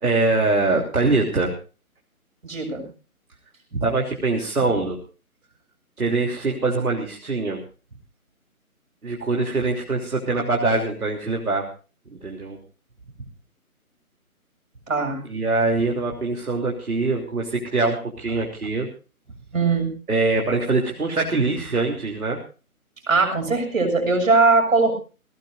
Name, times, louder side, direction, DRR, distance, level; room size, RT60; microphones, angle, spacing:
voice 1, 0.0-1.5 3.7-5.0 6.0-7.6 9.0-11.6 12.2-12.6 15.3-18.9 20.1-22.4, right 3 dB, 80° right, 0 dB, 3.4 m, -23 dB
voice 2, 2.4-2.8 14.9-15.2 19.5-19.9 23.1-24.9, right 3 dB, 60° right, 3 dB, 6.8 m, -20 dB
21.0 x 18.0 x 2.7 m, 0.35 s
hypercardioid pair, 170°, 44 cm